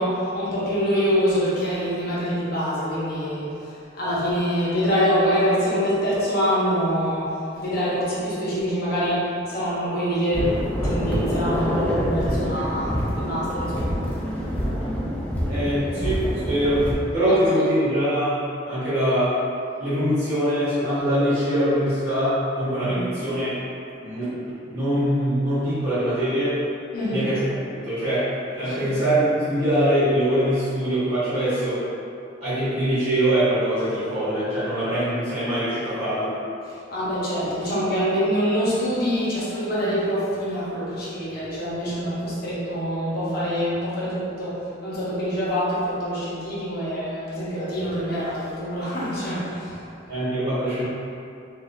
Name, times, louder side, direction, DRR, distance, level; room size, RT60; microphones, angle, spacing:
voice 1, 0.0-7.3 7.6-10.5 10.8-14.0 17.2-17.3 22.8-23.0 26.9-27.3 28.6-28.9 36.7-49.8, equal, 55° left, -9 dB, 1.0 m, -25 dB
sound 1, 10.3-17.0, equal, 10° left, 0.5 m, -26 dB
voice 2, 15.5-16.8 17.1-18.4 18.7-19.3 19.8-23.5 24.0-26.6 27.1-27.4 27.7-28.2 28.5-31.8 32.4-36.3 50.1-50.8, equal, 35° right, -15 dB, 1.2 m, -23 dB
4.0 x 2.4 x 2.6 m, 2.6 s
head